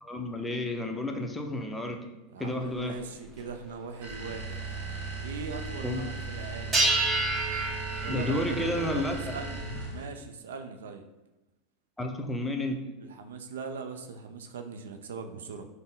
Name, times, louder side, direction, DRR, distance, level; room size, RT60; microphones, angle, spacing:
voice 1, 0.0-2.1 2.4-3.0 5.8-6.1 8.1-9.4 12.0-12.9, left 1 dB, 5° left, 2 dB, 0.6 m, -31 dB
voice 2, 2.3-4.6 5.2-6.8 8.0-11.0 13.0-15.7, right 5 dB, 80° right, 6 dB, 0.3 m, -40 dB
sound 1, 2.4-2.5 3.4-3.5 3.9-4.0 4.5-4.8 6.7-9.9, right 2 dB, 25° right, 1.2 m, -30 dB
sound 2, 4.0-10.1, right 3 dB, 60° right, 0.8 m, -37 dB
3.8 x 2.0 x 3.7 m, 1.0 s
hypercardioid pair, 90°, 0 cm